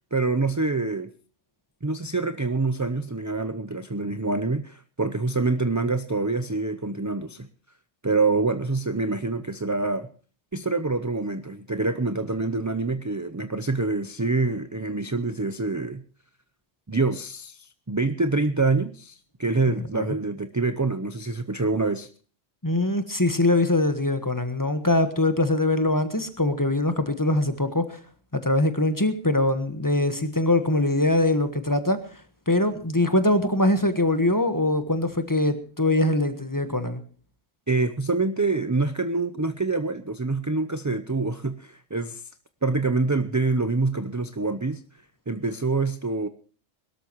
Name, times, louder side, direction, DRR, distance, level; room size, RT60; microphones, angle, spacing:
voice 1, 0.1-1.1 1.8-7.5 8.0-10.1 10.5-16.0 16.9-22.1 37.7-42.2 42.6-44.8 45.3-46.3, right 3 dB, 20° right, 10 dB, 0.6 m, -26 dB
voice 2, 22.6-28.0 28.3-32.0 32.5-37.0, left 2 dB, 15° left, 9 dB, 1.4 m, -23 dB
22.5 x 13.0 x 3.1 m, 0.40 s
omnidirectional pair, 1.3 m